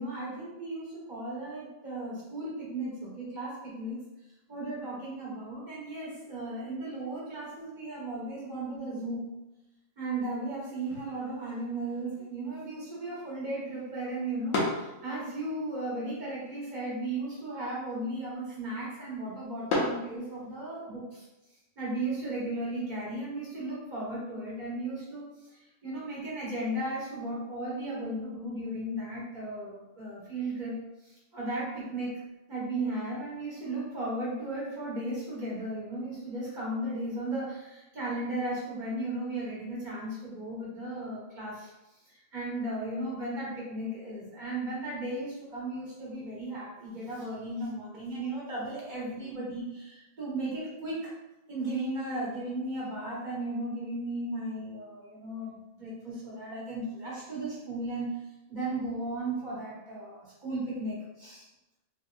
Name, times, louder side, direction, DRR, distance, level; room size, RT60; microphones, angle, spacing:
voice 1, 0.0-4.0 4.5-9.3 10.0-21.3 21.8-30.7 31.0-32.2 32.5-41.7 42.1-51.1 51.5-58.1 58.5-61.5, right 1 dB, 35° right, -7 dB, 1.0 m, -35 dB
sound 1, 10.8-20.8, left 2 dB, 90° left, 1.2 m, -39 dB
3.4 x 2.6 x 2.3 m, 0.98 s
omnidirectional pair, 1.5 m